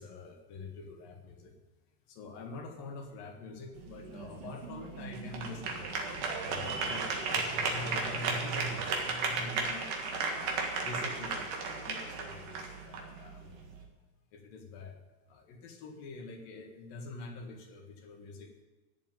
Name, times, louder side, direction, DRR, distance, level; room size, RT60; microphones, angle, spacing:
voice 1, 0.0-1.5 2.1-10.4 10.8-13.6 14.3-15.0 15.3-18.6, left 2 dB, 80° left, 2 dB, 3.5 m, -45 dB
sound 1, 3.7-13.8, right 4 dB, 70° right, 3.4 m, -35 dB
14.0 x 7.4 x 9.3 m, 1.3 s
omnidirectional pair, 4.0 m